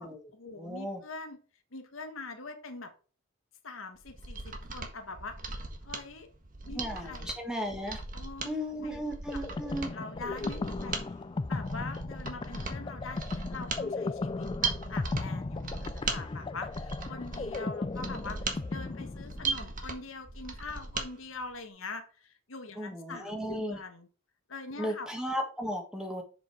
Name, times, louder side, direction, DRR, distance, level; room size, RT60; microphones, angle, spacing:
voice 1, 0.0-1.4 1.7-2.9 3.6-5.6 5.8-6.3 6.6-7.3 7.6-7.7 8.1-8.5 8.8-9.0 9.3-9.4 9.9-11.1 11.5-24.1 24.5-25.1, left 3 dB, 70° left, 6 dB, 1.4 m, -43 dB
voice 2, 0.5-1.0 6.7-8.0 8.4-9.9 22.8-23.8 24.8-26.2, equal, 5° right, 2 dB, 1.5 m, -35 dB
Mechanisms, 4.0-21.1 21.4-21.5, right 4 dB, 40° right, 1.5 m, -38 dB
sound 1, 9.3-19.8, left 3 dB, 25° left, 0.3 m, -36 dB
7.2 x 5.2 x 4.9 m, 0.36 s
head